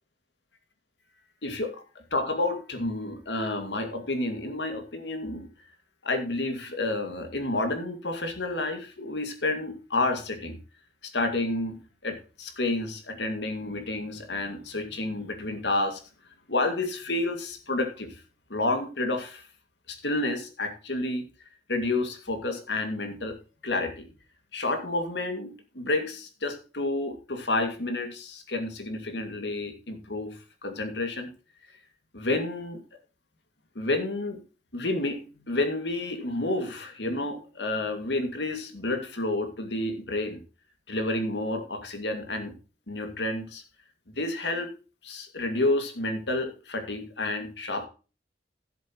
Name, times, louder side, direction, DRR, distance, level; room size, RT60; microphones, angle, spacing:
voice 1, 1.4-1.8 2.1-5.5 6.0-10.6 11.0-16.0 16.5-18.2 18.5-19.4 19.9-21.2 21.7-23.4 23.6-24.1 24.5-31.3 32.1-32.8 33.8-34.4 34.7-40.4 40.9-42.5 42.9-43.6 44.2-44.7 45.0-47.9, left 2 dB, 75° left, 6 dB, 2.2 m, -30 dB
15.0 x 7.8 x 3.0 m, 0.34 s
head